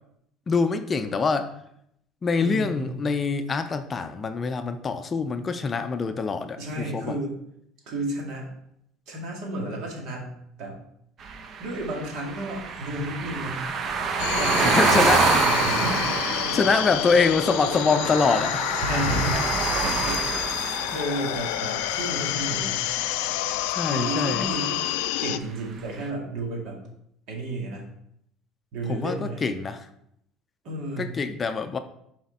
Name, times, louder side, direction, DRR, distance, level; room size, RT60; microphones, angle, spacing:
voice 1, 0.5-1.5 2.2-7.2 14.6-15.4 16.5-18.7 20.9-21.0 23.7-24.5 28.9-29.9 31.0-31.8, left 4 dB, 30° left, 9 dB, 0.5 m, -25 dB
voice 2, 2.4-2.9 6.6-7.4 7.9-8.5 9.1-10.3 10.6-10.8 11.6-13.6 14.4-16.6 18.7-19.4 19.8-22.8 23.9-24.9 25.2-26.8 27.3-27.9 28.7-29.5 30.6-31.2, right 1 dB, 65° right, -1 dB, 2.1 m, -32 dB
sound 1, 11.2-23.3, right 5 dB, 45° right, 0.7 m, -27 dB
sound 2, 14.2-25.4, left 14 dB, 85° left, 0.3 m, -28 dB
6.2 x 4.3 x 4.1 m, 0.74 s
supercardioid pair, 115°, 0 cm